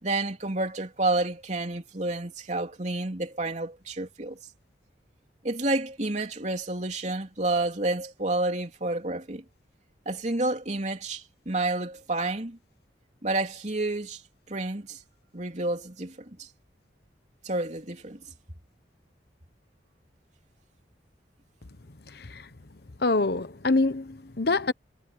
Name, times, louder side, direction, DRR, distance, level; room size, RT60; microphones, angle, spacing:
voice 1, 0.0-4.4 5.4-9.4 10.0-12.6 13.2-14.2 14.5-15.0 15.3-16.5 17.4-18.2, right 2 dB, 40° right, 3.2 m, -29 dB
voice 2, 23.0-24.7, left 3 dB, 60° left, 1.2 m, -25 dB
head